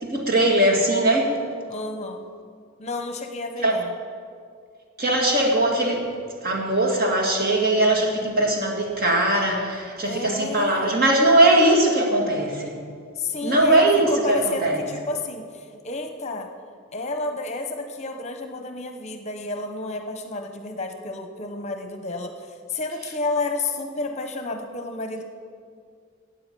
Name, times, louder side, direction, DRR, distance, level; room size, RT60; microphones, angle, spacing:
voice 1, 0.0-1.3 3.6-3.8 5.0-6.0 6.4-12.8 13.4-14.8, right 1 dB, 50° right, -1 dB, 2.1 m, -20 dB
voice 2, 1.7-2.3 2.8-3.9 10.0-11.0 13.2-16.5 16.9-25.2, left 2 dB, 35° left, 6 dB, 0.8 m, -31 dB
15.5 x 8.9 x 5.3 m, 2.2 s
head